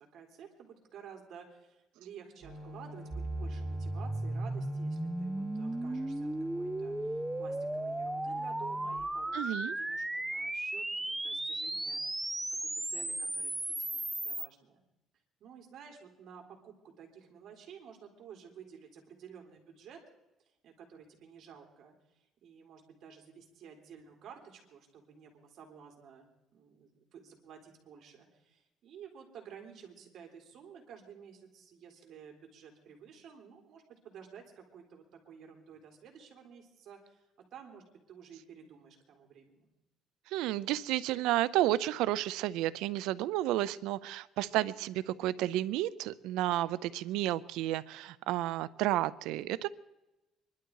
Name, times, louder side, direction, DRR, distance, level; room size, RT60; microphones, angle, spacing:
voice 1, 0.0-12.3 12.6-14.8 15.4-20.0 20.6-39.7, right 7 dB, 65° right, 3 dB, 3.6 m, -53 dB
sound 1, 2.4-9.0, left 1 dB, 40° right, 4.2 m, -46 dB
sound 2, 3.1-14.5, right 2 dB, 10° right, 0.5 m, -35 dB
voice 2, 9.3-9.8 40.3-49.7, right 14 dB, 90° right, 19 dB, 0.5 m, -31 dB
24.5 x 12.0 x 4.7 m, 0.98 s
cardioid pair, 110°, 0 cm